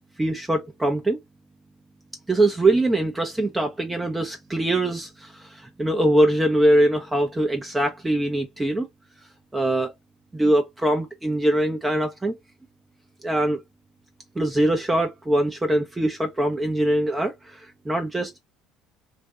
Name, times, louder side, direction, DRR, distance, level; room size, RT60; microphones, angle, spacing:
voice 1, 0.2-1.2 2.3-8.9 9.5-9.9 10.3-12.3 13.2-13.6 14.4-18.4, right 1 dB, 15° right, 0.6 m, -22 dB
2.5 x 2.2 x 3.5 m
hypercardioid pair, 65°, 0 cm